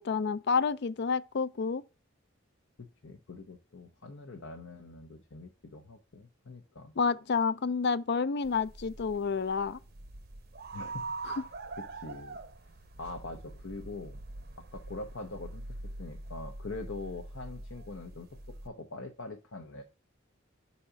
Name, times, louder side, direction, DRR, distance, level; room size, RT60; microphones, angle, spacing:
voice 1, 0.0-1.8 7.0-9.8 11.3-11.4, left 5 dB, 60° left, 0.4 m, -29 dB
voice 2, 2.8-6.9 10.7-11.1 11.8-12.4 13.0-14.2 14.6-19.8, left 3 dB, 80° left, 0.9 m, -43 dB
sound 1, 8.4-18.7, right 3 dB, 55° right, 0.7 m, -44 dB
5.8 x 4.2 x 4.9 m
head